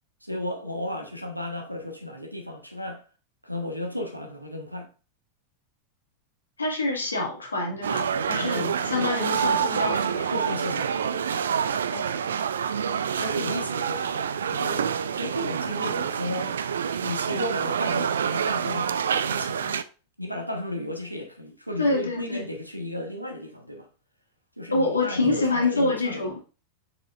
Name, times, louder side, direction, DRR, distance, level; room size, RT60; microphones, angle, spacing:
voice 1, 0.2-3.0 3.4-4.9 8.4-11.2 13.1-16.5 17.0-19.7 20.2-23.9 24.6-26.3, left 1 dB, 90° right, 1.4 m, -34 dB
voice 2, 6.6-10.3 11.9-12.3 21.8-22.4 24.7-26.4, left 2 dB, 75° left, 2.0 m, -26 dB
sound 1, 7.8-19.8, right 7 dB, 65° right, 0.4 m, -27 dB
6.5 x 6.5 x 2.5 m
figure-of-eight pair, 90°, 0 cm